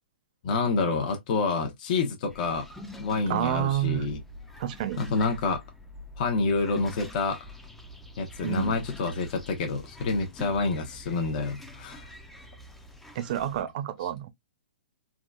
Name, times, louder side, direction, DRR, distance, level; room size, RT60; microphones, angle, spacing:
voice 1, 0.4-2.7 3.0-4.2 5.0-5.6 6.2-7.4 8.2-12.1, left 4 dB, 45° left, 0.9 m, -28 dB
sound 1, 2.3-13.6, left 1 dB, 5° left, 0.5 m, -45 dB
voice 2, 3.3-4.1 4.6-5.0 8.4-8.8 13.2-14.3, right 11 dB, 45° right, 0.6 m, -29 dB
3.7 x 2.3 x 2.3 m
hypercardioid pair, 145°, 6 cm